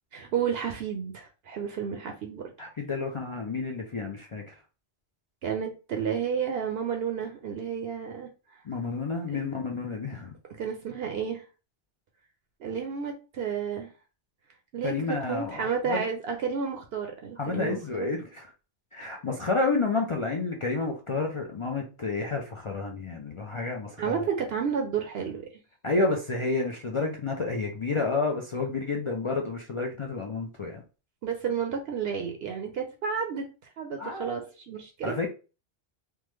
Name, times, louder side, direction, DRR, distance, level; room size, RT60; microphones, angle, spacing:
voice 1, 0.1-2.5 5.4-8.3 9.3-9.4 10.6-11.4 12.6-13.9 14.7-14.9 15.3-18.1 19.0-19.1 24.0-25.5 31.2-33.5 33.8-35.1, right 7 dB, 65° right, 3 dB, 0.8 m, -31 dB
voice 2, 2.6-4.5 8.7-10.3 14.8-16.0 17.4-18.5 18.9-24.3 25.8-30.8 34.0-34.4 35.0-35.3, left 3 dB, 55° left, 1 dB, 0.3 m, -30 dB
3.5 x 2.0 x 3.0 m, 0.33 s
omnidirectional pair, 1.2 m